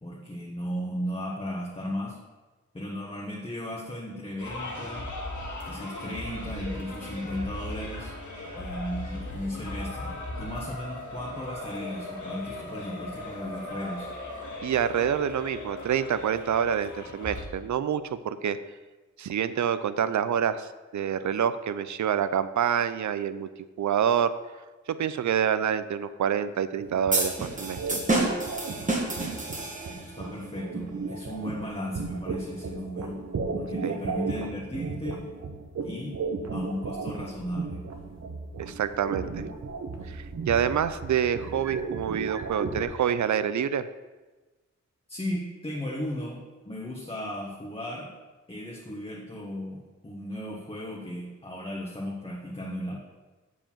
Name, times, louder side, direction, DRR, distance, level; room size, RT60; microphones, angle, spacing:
voice 1, 0.0-2.2 2.7-5.1 5.6-8.1 8.6-14.1 29.9-33.2 33.6-35.3 35.8-36.2 36.5-37.8 45.1-48.1 48.5-53.0, left 1 dB, 20° left, -4 dB, 1.2 m, -35 dB
sound 1, 4.4-17.4, left 1 dB, 85° left, 1.9 m, -38 dB
voice 2, 14.6-18.6 19.2-23.5 23.8-24.3 24.9-28.0 33.8-34.0 38.6-39.5 40.1-43.9, right 8 dB, 80° right, 13 dB, 0.5 m, -27 dB
sound 2, 26.8-42.8, right 4 dB, 65° right, 1.1 m, -35 dB
sound 3, 27.1-30.2, right 2 dB, 25° right, 1.7 m, -29 dB
7.8 x 4.8 x 7.2 m, 1.2 s
wide cardioid pair, 135°, 29 cm